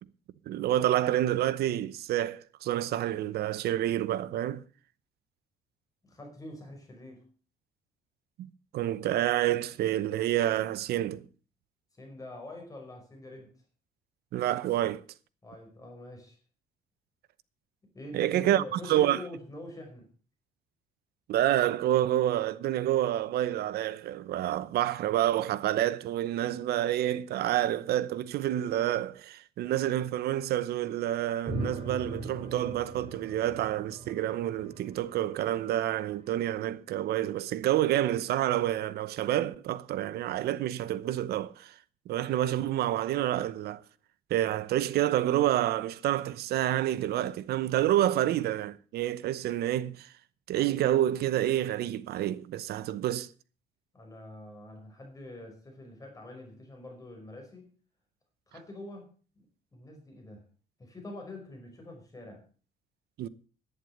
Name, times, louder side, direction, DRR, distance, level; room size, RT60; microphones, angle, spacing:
voice 1, 0.5-4.6 8.7-11.3 14.3-15.0 18.1-19.2 21.3-41.7 42.1-43.8 44.3-50.1 50.5-53.3 63.2-63.3, right 13 dB, 70° right, 0.9 m, -28 dB
voice 2, 6.1-7.2 11.9-13.5 15.4-16.4 17.9-20.1 53.9-57.7 58.5-59.5 59.7-60.5 60.8-62.4, left 1 dB, 20° left, 5.4 m, -45 dB
sound 1, 31.5-36.1, right 2 dB, 30° right, 4.4 m, -40 dB
11.0 x 9.5 x 6.6 m
cardioid pair, 110°, 17 cm